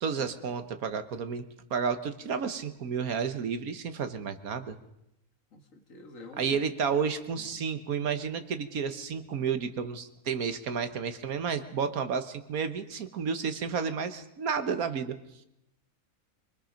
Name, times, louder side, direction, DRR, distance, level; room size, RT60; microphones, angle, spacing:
voice 1, 0.0-4.8 6.4-15.1, right 6 dB, 75° right, 10 dB, 1.6 m, -31 dB
voice 2, 5.5-6.6 7.0-7.7, left 3 dB, 60° left, 4 dB, 2.2 m, -49 dB
25.0 x 20.0 x 5.2 m, 0.83 s
omnidirectional pair, 1.5 m